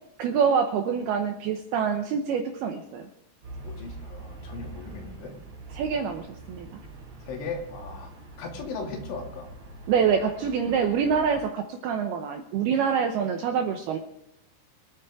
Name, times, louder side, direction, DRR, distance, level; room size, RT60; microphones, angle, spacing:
voice 1, 0.2-3.1 5.7-6.8 9.9-14.0, right 6 dB, 80° right, 4 dB, 2.3 m, -26 dB
Traffic noise roadway noise, 3.4-11.4, right 2 dB, 40° right, 3.9 m, -43 dB
voice 2, 3.6-5.3 7.3-9.5, left 4 dB, 75° left, 0 dB, 4.8 m, -37 dB
25.5 x 9.9 x 3.6 m, 0.83 s
omnidirectional pair, 5.6 m